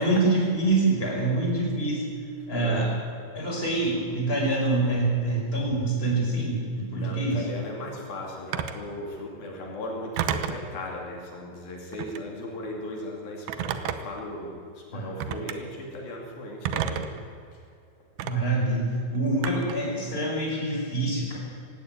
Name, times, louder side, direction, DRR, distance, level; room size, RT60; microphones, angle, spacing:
voice 1, 0.0-2.0 2.5-2.9 3.3-7.5 14.9-15.3 18.2-21.4, right 2 dB, 15° left, -1 dB, 5.4 m, -25 dB
voice 2, 2.5-2.9 7.0-14.6 14.9-17.1, left 1 dB, 75° left, 0 dB, 4.5 m, -37 dB
Telephone, 8.5-8.9 10.2-10.7 11.9-12.3 13.5-14.2 15.2-15.6 16.7-17.2 18.2-18.3 19.4-19.9, right 9 dB, 90° right, 2.9 m, -30 dB
18.5 x 16.5 x 9.1 m, 2.4 s
omnidirectional pair, 4.3 m